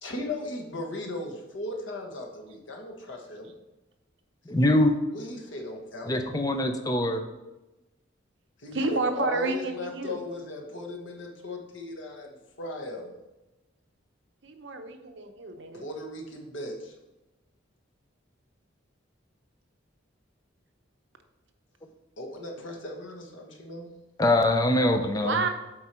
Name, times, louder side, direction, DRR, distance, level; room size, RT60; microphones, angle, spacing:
voice 1, 0.0-3.5 5.1-6.1 8.6-13.1 15.7-16.9 22.2-23.9, left 1 dB, 75° left, 1 dB, 1.3 m, -37 dB
voice 2, 4.5-5.0 6.1-7.2 24.2-25.4, left 1 dB, 20° left, 5 dB, 0.5 m, -23 dB
voice 3, 8.7-10.2 14.4-15.8 25.2-25.5, right 3 dB, 65° right, 5 dB, 0.8 m, -30 dB
7.9 x 4.6 x 4.4 m, 1.0 s
head